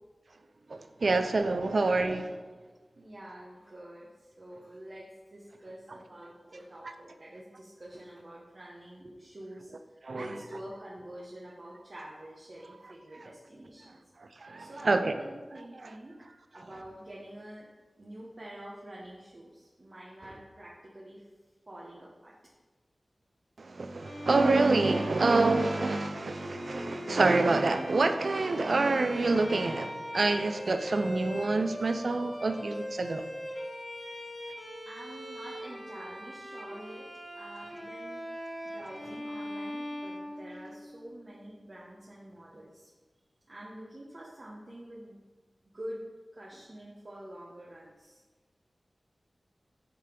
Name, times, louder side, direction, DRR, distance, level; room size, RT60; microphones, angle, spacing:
voice 1, 0.7-2.4 10.0-10.3 14.4-15.1 23.6-33.3, right 3 dB, 75° right, 0.5 m, -27 dB
voice 2, 3.0-14.0 14.6-16.1 16.5-17.7 18.0-21.3 21.7-22.4 34.8-37.1 37.3-38.2 38.7-42.9 43.5-45.2 45.7-46.0 46.3-48.2, right 1 dB, 55° right, 1.3 m, -47 dB
Bowed string instrument, 24.0-41.0, equal, 40° left, 2.5 m, -41 dB
9.9 x 3.4 x 5.3 m
cardioid pair, 40°, 0 cm